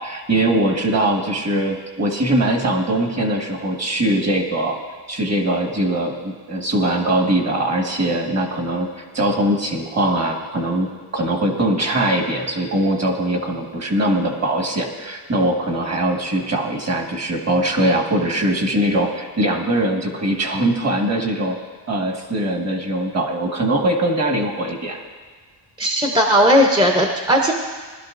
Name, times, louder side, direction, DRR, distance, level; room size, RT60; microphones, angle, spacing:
voice 1, 0.0-4.8 5.1-21.6 21.9-25.0, right 1 dB, 35° right, 2 dB, 1.6 m, -21 dB
voice 2, 25.8-27.5, equal, 10° right, 1 dB, 0.7 m, -16 dB
20.5 x 12.0 x 2.6 m, 1.5 s
wide cardioid pair, 160°, 45 cm